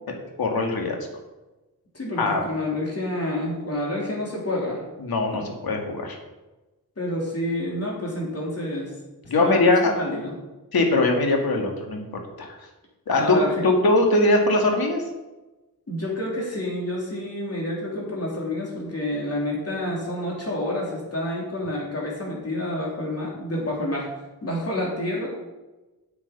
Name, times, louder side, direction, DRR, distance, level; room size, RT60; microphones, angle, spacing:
voice 1, 0.1-1.1 2.2-2.4 5.0-6.2 9.3-9.9 10.7-12.0 12.4-12.6 13.1-15.0, left 2 dB, 70° left, 2 dB, 2.1 m, -21 dB
voice 2, 1.9-4.8 7.0-8.9 9.4-10.3 13.1-13.6 15.9-24.1 24.4-25.3, left 1 dB, 40° left, -3 dB, 3.7 m, -28 dB
8.5 x 8.0 x 5.4 m, 1.1 s
wide cardioid pair, 95°, 37 cm